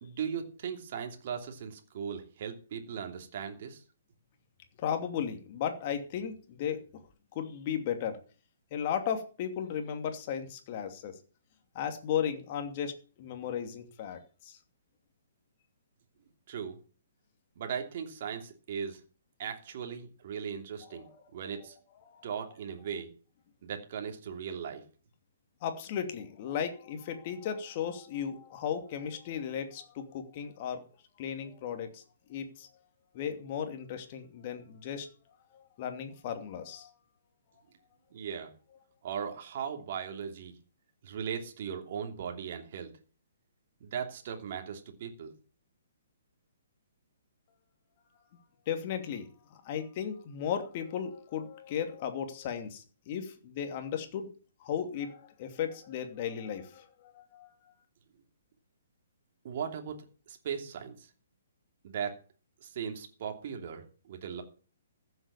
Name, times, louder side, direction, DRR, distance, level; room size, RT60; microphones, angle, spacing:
voice 1, 0.0-3.8 16.5-16.8 17.6-19.0 19.4-21.8 22.2-23.1 23.6-24.8 38.1-38.5 39.0-40.5 41.0-42.9 43.8-45.3 59.4-61.1 61.8-62.2 62.6-64.4, right 7 dB, 50° right, 4 dB, 2.9 m, -38 dB
voice 2, 4.8-6.8 7.3-8.2 8.7-11.2 11.7-14.6 20.9-21.2 21.5-21.6 22.1-22.3 25.6-30.8 31.2-32.0 32.3-32.7 33.1-35.1 35.5-36.9 48.7-49.3 49.6-54.3 54.6-57.5, left 8 dB, 40° left, 6 dB, 2.7 m, -35 dB
15.0 x 7.9 x 7.1 m, 0.38 s
figure-of-eight pair, 125°, 0 cm